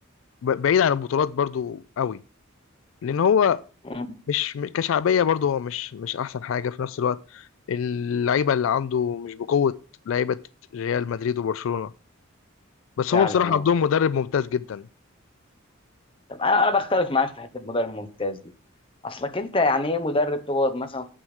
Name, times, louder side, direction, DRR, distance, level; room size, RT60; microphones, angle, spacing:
voice 1, 0.4-2.2 3.0-3.6 4.3-9.8 10.1-10.4 10.7-11.9 13.0-14.9, left 7 dB, 70° left, 0.3 m, -24 dB
voice 2, 13.1-13.6 16.3-18.4 19.0-21.1, left 3 dB, 25° left, 0.9 m, -25 dB
7.8 x 6.2 x 6.3 m
head